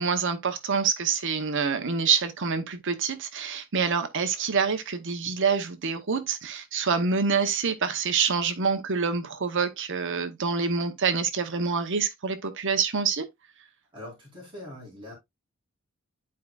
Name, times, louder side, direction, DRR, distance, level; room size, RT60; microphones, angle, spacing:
voice 1, 0.0-13.3, right 5 dB, 60° right, 0.9 m, -26 dB
voice 2, 13.9-15.1, left 1 dB, 25° right, 4.0 m, -42 dB
11.0 x 4.7 x 2.4 m
head